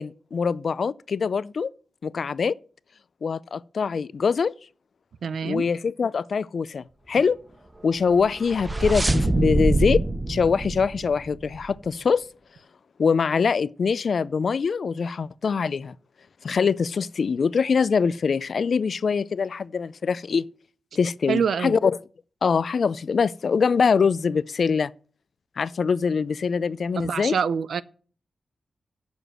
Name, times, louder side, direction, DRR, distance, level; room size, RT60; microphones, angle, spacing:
voice 1, 0.0-1.7 2.0-2.5 3.2-4.5 5.4-7.4 7.8-10.0 10.3-12.2 13.0-15.9 16.4-20.5 21.0-21.9 22.4-24.9 25.6-27.3, left 5 dB, 60° left, 0.4 m, -23 dB
voice 2, 5.2-5.7 21.3-21.8 27.0-27.8, right 6 dB, 90° right, 0.5 m, -25 dB
sound 1, 8.1-11.7, right 2 dB, 15° right, 0.5 m, -25 dB
8.1 x 7.0 x 7.5 m
wide cardioid pair, 120°, 0 cm